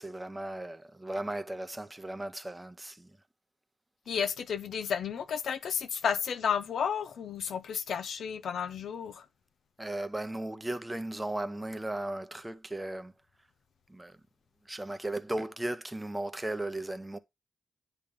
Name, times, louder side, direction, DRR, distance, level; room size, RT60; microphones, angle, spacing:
voice 1, 0.0-3.1 9.8-13.1 13.9-14.2 14.7-17.2, right 1 dB, 10° right, 0.6 m, -36 dB
voice 2, 4.1-9.3, left 7 dB, 75° left, 0.6 m, -32 dB
9.9 x 3.4 x 3.5 m
wide cardioid pair, 120°, 0 cm